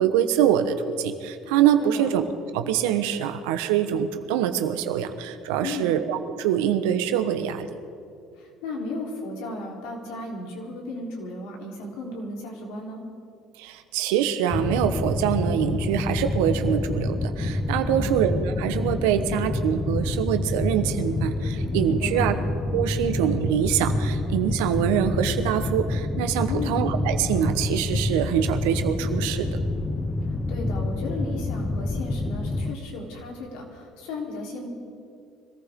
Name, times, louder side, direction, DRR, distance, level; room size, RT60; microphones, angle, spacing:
voice 1, 0.0-2.2 2.5-7.7 13.6-22.3 22.7-29.5, right 9 dB, 85° right, 8 dB, 1.1 m, -24 dB
voice 2, 1.8-2.1 5.6-5.9 8.4-13.1 17.9-18.2 22.0-22.4 26.5-26.8 30.3-34.7, left 2 dB, 80° left, -1 dB, 3.7 m, -35 dB
sound 1, 14.5-32.7, left 2 dB, 25° left, 0.8 m, -27 dB
25.0 x 14.5 x 3.7 m, 2.5 s
supercardioid pair, 85°, 0 cm